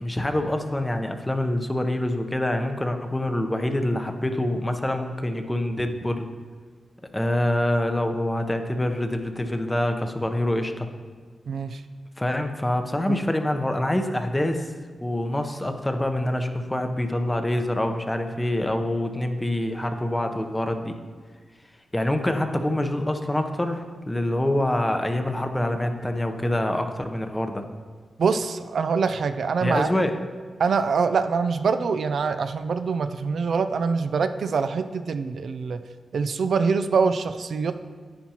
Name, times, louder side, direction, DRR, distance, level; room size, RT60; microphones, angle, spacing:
voice 1, 0.0-6.3 7.1-10.9 12.2-14.7 15.0-21.0 21.9-27.7 29.6-30.1, left 1 dB, 15° left, 6 dB, 0.8 m, -26 dB
voice 2, 11.5-11.8 13.1-13.2 28.2-29.9 30.6-35.8 36.1-37.7, right 5 dB, 70° right, 9 dB, 0.4 m, -24 dB
10.0 x 9.2 x 2.9 m, 1.6 s
cardioid pair, 80°, 0 cm